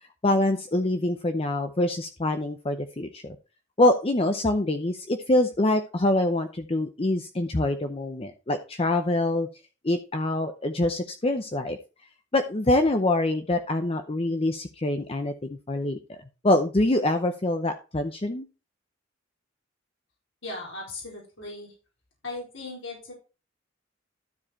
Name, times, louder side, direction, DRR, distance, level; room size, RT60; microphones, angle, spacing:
voice 1, 0.2-3.4 3.8-9.5 9.8-11.8 12.3-16.2 16.4-18.5, left 1 dB, 30° left, 7 dB, 0.7 m, -25 dB
voice 2, 20.4-21.7 22.2-23.1, left 2 dB, 85° left, -3 dB, 4.2 m, -37 dB
12.5 x 4.8 x 4.3 m, 0.32 s
head